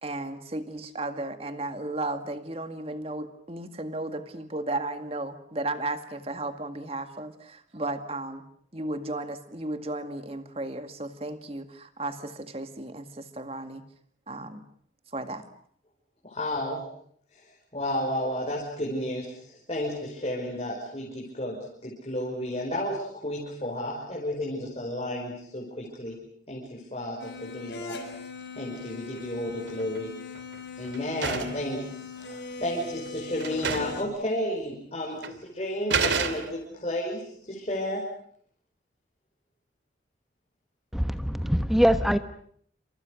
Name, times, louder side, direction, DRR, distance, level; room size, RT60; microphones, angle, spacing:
voice 1, 0.0-8.4 8.7-13.8 14.3-14.6 15.1-15.4, right 2 dB, 30° right, 8 dB, 2.2 m, -34 dB
voice 2, 16.2-16.9 17.3-17.4 17.7-26.2 26.5-28.0 28.6-30.1 30.8-38.0, left 1 dB, 35° left, -3 dB, 5.6 m, -32 dB
sound 1, 27.2-34.0, left 4 dB, 70° left, 6.3 m, -40 dB
sound 2, 29.5-30.0 30.3-31.7 32.6-32.7 33.1-33.2 33.4-34.1 34.3-34.4 35.2-35.4 35.9-36.8, right 5 dB, 75° right, 2.5 m, -30 dB
voice 3, 40.9-42.2, equal, ahead, 10 dB, 1.2 m, -23 dB
28.5 x 26.5 x 6.5 m, 0.63 s
head